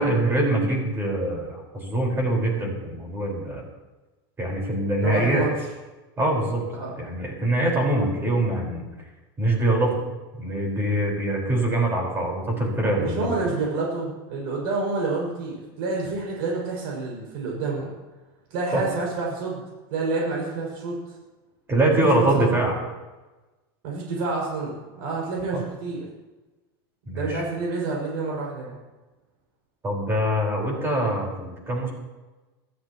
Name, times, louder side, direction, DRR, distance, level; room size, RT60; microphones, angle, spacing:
voice 1, 0.0-3.6 4.4-5.4 6.2-6.6 7.0-8.8 9.4-10.0 10.4-13.3 18.7-18.8 21.7-22.8 25.5-25.6 27.1-27.4 29.8-31.9, right 1 dB, 20° right, -1 dB, 5.0 m, -24 dB
voice 2, 5.0-5.5 6.8-6.9 13.0-17.9 18.5-19.6 19.9-21.0 22.0-22.5 23.8-26.0 27.1-28.8, right 3 dB, 70° right, -3 dB, 6.4 m, -28 dB
22.0 x 13.5 x 3.1 m, 1.2 s
supercardioid pair, 140°, 13 cm